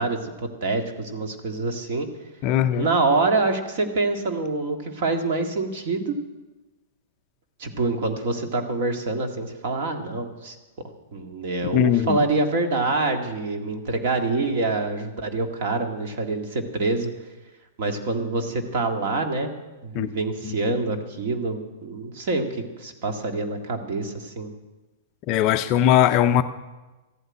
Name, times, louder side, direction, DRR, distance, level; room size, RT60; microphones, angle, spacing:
voice 1, 0.0-2.1 2.8-6.1 7.6-10.6 11.1-17.1 17.8-19.5 19.8-24.5, right 3 dB, 45° right, 1.9 m, -26 dB
voice 2, 2.4-2.9 11.7-12.2 20.0-20.1 20.4-20.5 25.3-26.4, left 11 dB, 25° left, 0.4 m, -19 dB
14.0 x 8.0 x 9.7 m
supercardioid pair, 175°, 0 cm